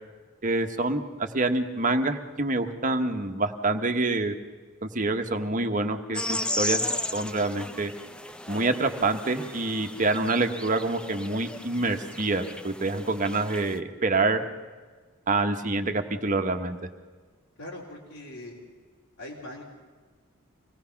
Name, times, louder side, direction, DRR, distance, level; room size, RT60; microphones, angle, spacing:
voice 1, 0.4-4.3 4.8-6.8 7.1-7.9 8.5-14.4 15.3-16.8, right 2 dB, 40° right, 6 dB, 1.3 m, -26 dB
sound 1, 6.1-13.8, left 1 dB, 5° left, 0.5 m, -35 dB
voice 2, 17.6-18.6 19.2-19.6, left 1 dB, 70° left, -5 dB, 3.4 m, -41 dB
25.5 x 18.5 x 5.9 m, 1.4 s
head